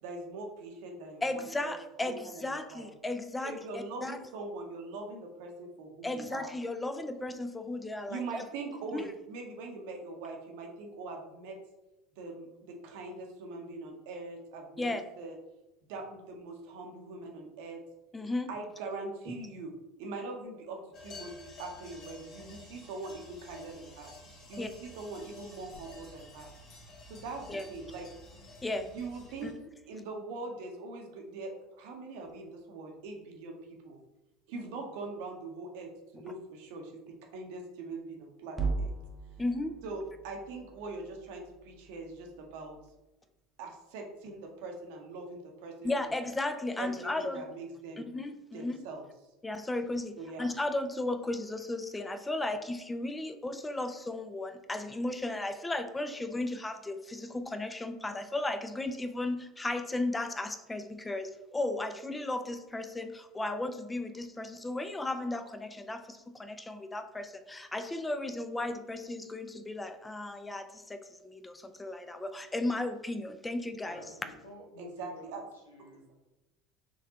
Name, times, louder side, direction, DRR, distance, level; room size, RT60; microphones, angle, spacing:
voice 1, 0.0-1.7 2.0-2.9 3.4-6.5 8.1-11.5 12.2-15.3 15.9-17.8 18.5-19.7 20.0-24.1 24.5-26.5 27.1-28.0 28.9-29.5 29.9-31.5 31.8-34.0 34.5-36.9 37.3-38.9 39.8-42.8 43.6-46.2 46.8-48.1 48.5-49.0 50.2-50.5 74.8-75.4 75.9-76.0, right 3 dB, 60° right, 2 dB, 0.8 m, -42 dB
voice 2, 1.2-4.2 6.0-8.4 8.9-9.0 14.8-15.0 18.1-18.5 24.6-24.7 27.5-27.7 28.6-28.9 29.4-29.5 39.4-39.8 45.8-47.5 48.0-48.9 49.4-74.0, left 2 dB, 15° left, 8 dB, 0.4 m, -35 dB
sound 1, 20.9-29.5, left 2 dB, 45° left, 1.2 m, -50 dB
sound 2, 38.6-42.9, right 4 dB, 10° right, 0.8 m, -39 dB
voice 3, 73.8-75.4 75.7-76.1, left 1 dB, 80° left, -1 dB, 1.1 m, -50 dB
5.4 x 3.4 x 2.9 m, 0.99 s
figure-of-eight pair, 70°, 0 cm